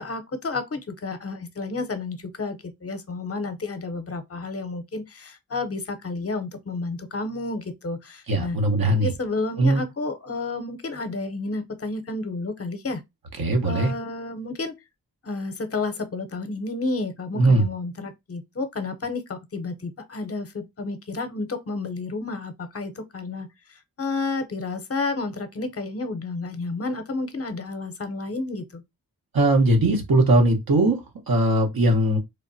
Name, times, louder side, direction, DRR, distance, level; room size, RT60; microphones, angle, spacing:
voice 1, 0.0-8.6 9.0-13.0 13.6-14.7 15.2-28.8, left 3 dB, 40° left, 0.7 m, -31 dB
voice 2, 8.3-9.1 9.6-9.8 13.4-13.9 17.3-17.6 29.3-32.2, right 1 dB, 65° right, 0.9 m, -20 dB
3.3 x 2.1 x 2.6 m
cardioid pair, 45°, 38 cm